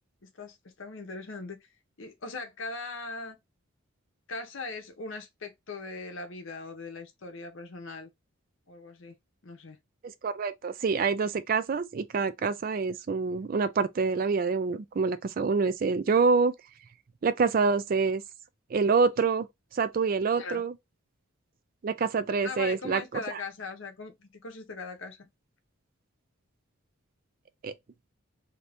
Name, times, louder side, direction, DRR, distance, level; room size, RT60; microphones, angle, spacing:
voice 1, 0.2-1.7 2.0-3.4 4.3-8.1 8.7-9.2 9.4-9.8 20.3-20.6 22.4-25.3, left 3 dB, 65° left, 0.8 m, -40 dB
voice 2, 10.0-16.5 17.2-18.2 18.7-19.5 19.7-20.7 21.8-23.4 27.6-27.7, right 4 dB, 40° right, 0.3 m, -26 dB
2.8 x 2.6 x 3.3 m
head